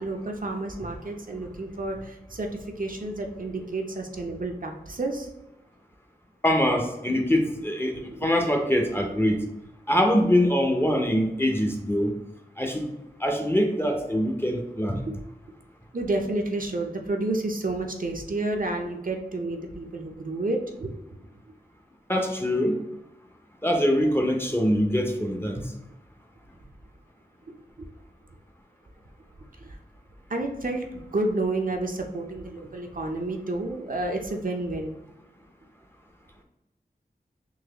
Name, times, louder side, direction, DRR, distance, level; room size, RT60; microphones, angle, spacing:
voice 1, 0.0-2.5 2.8-5.3 8.2-8.3 15.9-21.2 29.6-29.8 30.3-35.0, right 2 dB, 55° right, 2 dB, 0.6 m, -30 dB
voice 2, 6.4-9.4 9.9-12.1 12.6-12.9 13.2-15.0 22.1-22.8 23.6-25.7, equal, 15° left, 2 dB, 0.6 m, -23 dB
4.0 x 2.9 x 2.9 m, 0.94 s
wide cardioid pair, 65°, 17 cm